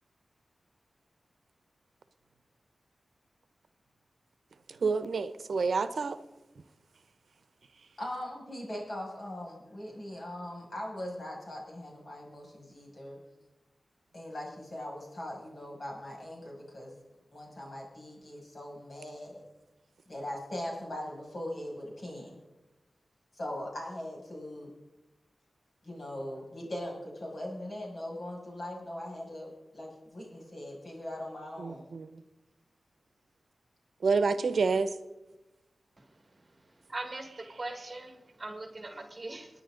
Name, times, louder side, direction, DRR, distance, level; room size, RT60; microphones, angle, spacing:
voice 1, 4.7-6.2 31.6-32.2 34.0-34.9, right 4 dB, 80° right, 11 dB, 0.8 m, -28 dB
voice 2, 8.0-13.2 14.1-16.9 17.3-19.4 20.1-22.4 23.3-24.7 25.8-31.8, left 1 dB, 50° left, -3 dB, 6.6 m, -40 dB
voice 3, 36.9-39.5, right 2 dB, 35° right, 5 dB, 1.7 m, -40 dB
28.5 x 10.0 x 3.9 m, 1.0 s
wide cardioid pair, 115°, 0 cm